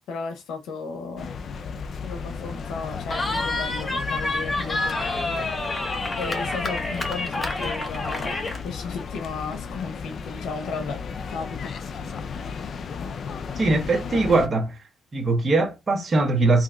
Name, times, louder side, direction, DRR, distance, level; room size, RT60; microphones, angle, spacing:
voice 1, 0.1-1.3 2.0-11.0 11.3-12.1, left 4 dB, 85° left, 0.7 m, -35 dB
sound 1, 1.2-14.5, left 5 dB, 50° left, 0.4 m, -34 dB
Cheering, 3.1-8.6, left 2 dB, 25° left, 0.8 m, -28 dB
voice 2, 13.6-14.8 15.1-16.6, right 3 dB, 30° right, 0.9 m, -21 dB
3.4 x 2.7 x 2.4 m
cardioid pair, 115°, 0 cm